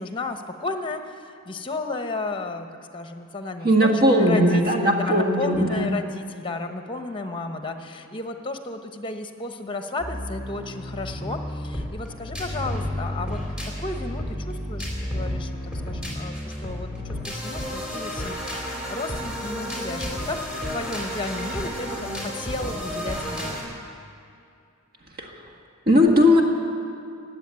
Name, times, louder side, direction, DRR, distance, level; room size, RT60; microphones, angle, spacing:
voice 1, 0.0-15.5 15.9-23.7, left 2 dB, 25° left, 7 dB, 1.0 m, -33 dB
voice 2, 3.6-5.9 25.2-25.3 25.9-26.4, equal, 50° right, 1 dB, 1.7 m, -18 dB
sound 1, 10.0-23.6, equal, 5° right, 3.1 m, -31 dB
17.5 x 7.7 x 9.6 m, 2.5 s
head